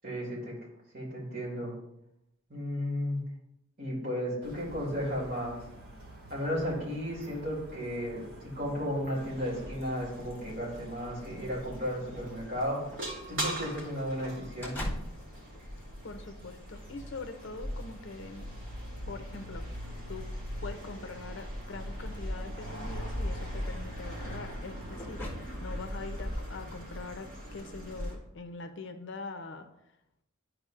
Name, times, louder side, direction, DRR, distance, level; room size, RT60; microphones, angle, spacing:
voice 1, 0.0-0.5 0.9-1.7 2.5-3.2 3.8-5.6 6.3-12.9 13.3-14.8, equal, 45° right, -5 dB, 2.6 m, -34 dB
sound 1, 4.4-9.7, right 1 dB, 85° right, 2.4 m, -50 dB
sound 2, 9.1-28.1, equal, 60° right, 2.5 m, -40 dB
sound 3, 9.7-27.3, left 1 dB, 10° left, 1.3 m, -48 dB
voice 2, 16.0-18.5 19.1-20.3 20.6-29.7, left 3 dB, 55° left, 7 dB, 0.6 m, -43 dB
12.0 x 4.7 x 2.5 m, 0.83 s
head